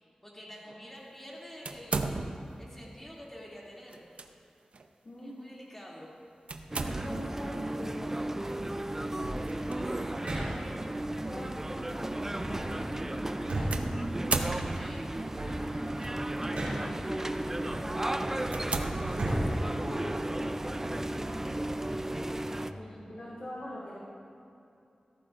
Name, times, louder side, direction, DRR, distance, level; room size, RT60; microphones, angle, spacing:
voice 1, 0.2-2.2 2.6-4.1 5.2-6.1 14.6-15.1 22.6-23.1, equal, 15° left, -5 dB, 2.7 m, -48 dB
sound 1, 1.6-2.6 3.9-4.3 4.7-4.9 6.5-7.4 9.4-9.8 10.6-10.7 13.7-15.1 16.0-16.5 17.0-17.2 17.8-17.9 18.5-19.7, right 3 dB, 75° right, 0.6 m, -35 dB
sound 2, 6.7-22.7, right 1 dB, 20° right, 0.4 m, -34 dB
voice 2, 6.8-8.5 10.8-14.1 16.2-21.7 22.4-24.0, equal, 55° left, -9 dB, 2.6 m, -44 dB
sound 3, 9.2-10.9 12.3-14.8 15.1-17.1 17.6-20.6, right 1 dB, 90° right, 2.8 m, -37 dB
15.0 x 13.5 x 2.6 m, 2.7 s
wide cardioid pair, 95°, 2 cm